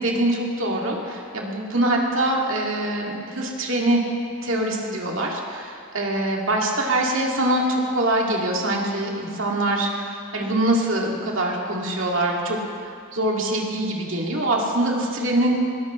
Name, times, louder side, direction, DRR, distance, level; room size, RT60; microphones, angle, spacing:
voice 1, 0.0-4.0 4.4-12.6 13.1-15.6, right 1 dB, 65° right, -1 dB, 2.2 m, -24 dB
20.0 x 17.0 x 3.1 m, 2.3 s
head